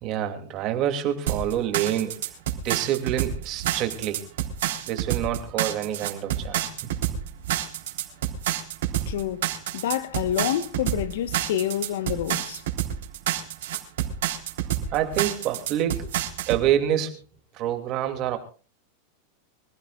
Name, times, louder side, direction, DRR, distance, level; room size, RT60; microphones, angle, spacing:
voice 1, 0.0-2.2 2.6-4.2 4.9-6.9 14.9-16.1 16.5-17.2 17.5-18.4, right 11 dB, 35° right, 2.7 m, -27 dB
sound 1, 1.3-16.6, right 11 dB, 75° right, 3.8 m, -28 dB
voice 2, 9.1-12.6, left 11 dB, 70° left, 1.3 m, -28 dB
25.0 x 16.5 x 2.5 m
supercardioid pair, 160°, 0 cm